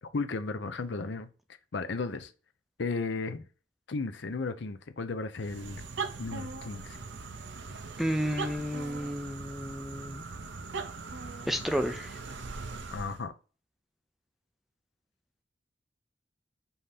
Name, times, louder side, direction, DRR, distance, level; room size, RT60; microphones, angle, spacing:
voice 1, 0.0-1.3 1.7-2.3 2.8-3.4 3.9-5.8 6.2-7.0 12.9-13.3, left 3 dB, 65° left, 0.6 m, -34 dB
sound 1, 5.4-13.2, right 4 dB, 65° right, 0.6 m, -40 dB
voice 2, 8.0-10.2 11.5-12.2, equal, ahead, 0.4 m, -32 dB
5.5 x 2.8 x 3.3 m
head